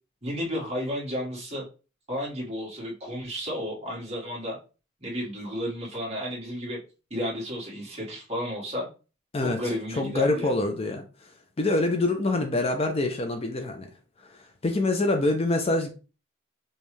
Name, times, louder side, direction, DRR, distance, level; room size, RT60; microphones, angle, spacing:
voice 1, 0.2-1.6 2.1-4.6 5.0-6.8 7.1-8.9 9.4-10.5, equal, 35° right, 1.7 m, -32 dB
voice 2, 9.9-11.3 11.6-13.9 14.3-15.9, left 2 dB, 30° left, 0.5 m, -25 dB
5.3 x 2.3 x 3.2 m
head